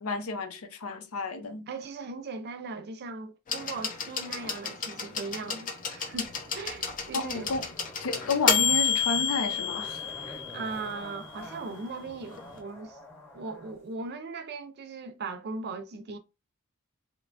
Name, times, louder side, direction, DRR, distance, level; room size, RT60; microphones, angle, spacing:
voice 1, 0.0-1.7 7.1-7.6 8.0-10.4, left 3 dB, 85° left, 0.6 m, -31 dB
voice 2, 1.7-7.5 10.5-13.0 13.3-16.2, right 3 dB, 50° right, 0.4 m, -38 dB
sound 1, 3.5-11.3 12.4-12.5, left 7 dB, 40° left, 0.5 m, -30 dB
Zipper (clothing), 6.1-13.8 14.0-14.1, left 1 dB, 15° left, 0.9 m, -47 dB
2.9 x 2.2 x 2.4 m
head